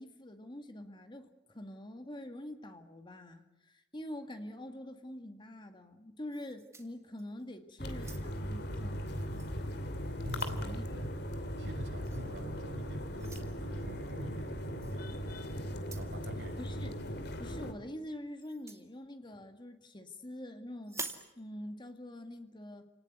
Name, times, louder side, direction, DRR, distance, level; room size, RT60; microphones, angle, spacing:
voice 1, 0.0-9.0 10.6-10.9 16.6-17.0 17.4-21.0 21.4-22.9, left 1 dB, 25° left, 7 dB, 2.0 m, -45 dB
sound 1, 6.3-7.5 7.9-8.5 9.3-9.5 9.9-10.7 12.1-12.3 13.2-13.5 14.8-15.0 15.8-16.2 18.4-18.9 20.8-21.3, right 3 dB, 15° right, 2.2 m, -46 dB
sound 2, 7.8-17.7, equal, 65° left, 2.8 m, -38 dB
voice 2, 10.2-11.1 11.6-15.1 15.9-16.6, equal, 75° right, 3 dB, 6.6 m, -45 dB
29.0 x 19.0 x 9.4 m, 0.93 s
head